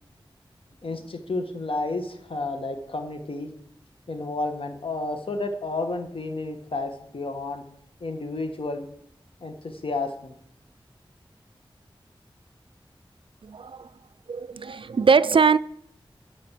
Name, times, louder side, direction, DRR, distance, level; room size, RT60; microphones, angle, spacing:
voice 1, 0.8-3.5 4.1-7.6 8.0-8.9 9.4-10.3, left 2 dB, 75° left, 1.5 m, -31 dB
voice 2, 13.4-13.9 14.3-15.6, right 5 dB, 65° right, 0.4 m, -21 dB
11.0 x 5.1 x 7.5 m
wide cardioid pair, 70°, 9 cm